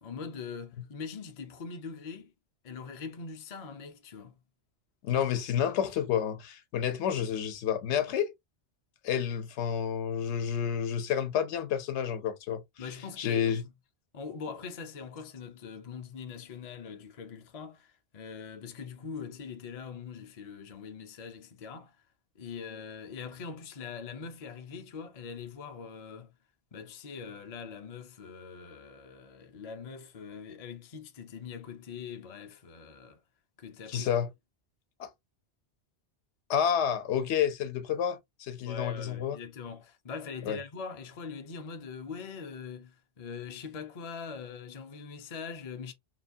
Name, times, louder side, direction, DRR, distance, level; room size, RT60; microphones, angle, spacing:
voice 1, 0.0-2.3 2.6-4.4 12.8-13.6 14.1-21.9 22.4-26.3 26.7-33.2 33.6-34.1 38.6-45.9, left 5 dB, 45° left, 0.5 m, -42 dB
voice 2, 5.0-8.3 9.0-12.6 13.2-13.6 33.9-34.3 35.0-35.1 36.5-39.4 40.5-40.6, left 8 dB, 75° left, 0.9 m, -29 dB
2.9 x 2.2 x 2.5 m
omnidirectional pair, 1.2 m